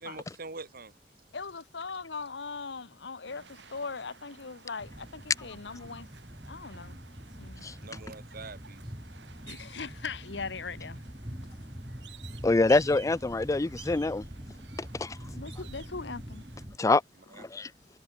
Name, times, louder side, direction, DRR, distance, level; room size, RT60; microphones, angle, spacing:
voice 1, 0.0-0.9 7.8-8.8 17.3-17.5, right 3 dB, 55° right, 1.9 m, -44 dB
voice 2, 1.3-6.1 6.5-7.0 7.4-7.6 9.5-11.0 11.3-11.4 15.3-16.4, left 4 dB, 80° left, 1.1 m, -40 dB
sound 1, 3.2-16.7, right 7 dB, 80° right, 5.1 m, -54 dB
sound 2, 4.8-16.8, equal, 25° right, 3.6 m, -44 dB
voice 3, 12.4-14.2 14.9-15.2 16.8-17.0 17.4-17.7, left 3 dB, 20° left, 0.4 m, -25 dB
head